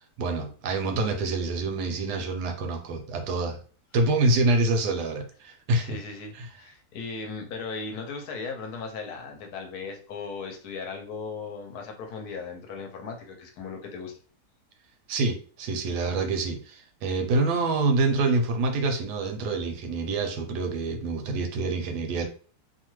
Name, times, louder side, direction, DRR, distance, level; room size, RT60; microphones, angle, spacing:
voice 1, 0.2-3.6 3.9-6.0 6.3-6.5 15.1-22.3, right 3 dB, 80° right, 5 dB, 1.2 m, -26 dB
voice 2, 5.8-14.1, left 4 dB, 70° left, 3 dB, 1.1 m, -37 dB
2.8 x 2.3 x 3.0 m, 0.41 s
omnidirectional pair, 1.7 m